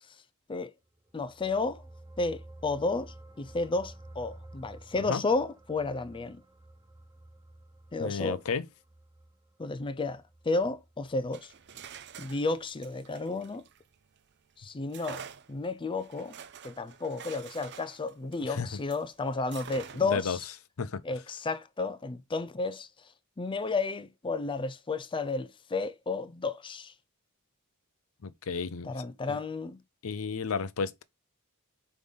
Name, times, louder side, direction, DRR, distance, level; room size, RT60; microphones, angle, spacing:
sound 1, 1.0-11.7 12.0-12.2, right 1 dB, 15° right, 0.7 m, -52 dB
voice 1, 1.1-1.8 2.2-6.4 7.9-8.4 9.6-11.5 12.2-13.6 14.6-15.2 15.5-16.4 16.6-20.4 21.0-22.9 23.4-26.9 28.8-29.8, left 3 dB, 20° left, 0.5 m, -32 dB
voice 2, 8.0-8.6 18.4-18.8 19.9-20.4 20.8-21.0 28.2-29.4 30.0-31.0, left 5 dB, 70° left, 0.6 m, -33 dB
sound 2, 11.2-14.3 14.9-19.1 19.5-20.3, right 7 dB, 50° right, 0.7 m, -47 dB
5.3 x 5.0 x 3.9 m
head